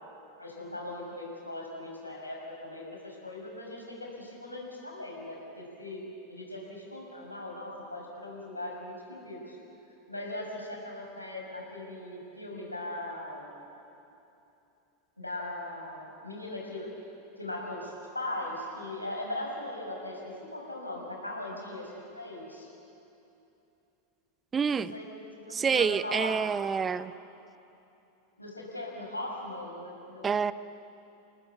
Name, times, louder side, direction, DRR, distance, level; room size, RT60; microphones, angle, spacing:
voice 1, 0.4-6.0 6.3-9.6 10.1-13.5 15.2-16.9 17.4-22.7 24.6-26.5 28.4-30.3, left 1 dB, 85° left, -1 dB, 6.4 m, -39 dB
voice 2, 24.5-24.9 25.5-27.1 30.2-30.5, right 6 dB, 20° right, 16 dB, 0.7 m, -27 dB
29.5 x 18.5 x 8.3 m, 2.8 s
figure-of-eight pair, 85°, 0 cm